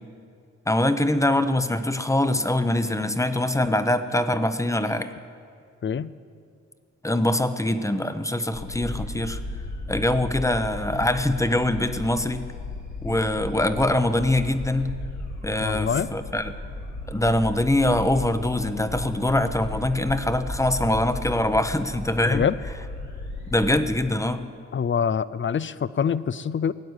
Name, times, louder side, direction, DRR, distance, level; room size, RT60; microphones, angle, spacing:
voice 1, 0.7-5.1 7.0-9.4 9.9-12.5 13.0-15.0 15.4-16.5 17.1-22.4 23.5-24.4, left 1 dB, 10° left, 10 dB, 0.9 m, -23 dB
voice 2, 5.8-6.1 15.6-16.1 22.2-22.5 24.7-26.7, left 7 dB, 40° left, 17 dB, 0.5 m, -25 dB
sound 1, 8.5-23.8, left 2 dB, 75° left, 2.4 m, -35 dB
17.0 x 9.0 x 8.2 m, 2.3 s
cardioid pair, 65°, 29 cm